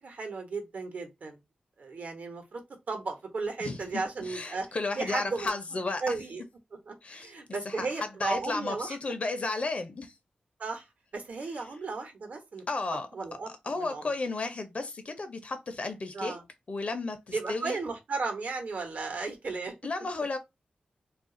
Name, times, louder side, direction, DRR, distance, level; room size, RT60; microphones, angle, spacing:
voice 1, 0.0-1.4 1.8-2.6 2.9-4.7 4.9-5.5 6.0-6.4 6.9-9.0 10.6-10.9 11.1-12.6 13.1-13.5 13.8-14.0 16.1-16.4 17.3-19.7, right 3 dB, 65° right, 0.9 m, -35 dB
voice 2, 4.2-6.1 7.0-7.3 7.6-7.9 8.2-10.1 12.7-13.1 13.5-16.4 16.7-17.8 19.8-20.4, left 3 dB, 45° left, 0.7 m, -33 dB
2.5 x 2.4 x 3.7 m
wide cardioid pair, 100°, 3 cm